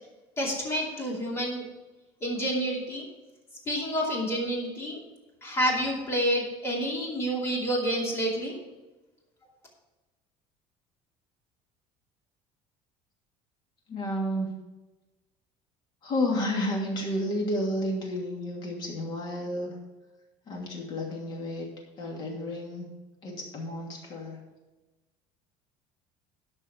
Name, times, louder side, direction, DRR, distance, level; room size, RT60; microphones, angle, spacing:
voice 1, 0.4-1.7 2.2-3.1 3.7-5.0 5.4-8.6, equal, 20° left, -2 dB, 2.7 m, -29 dB
voice 2, 13.9-14.5 16.0-19.7 20.5-21.7 22.0-22.9 23.2-24.4, left 1 dB, 40° left, -1 dB, 2.7 m, -31 dB
12.5 x 5.3 x 6.0 m, 1.1 s
cardioid pair, 165°, 12 cm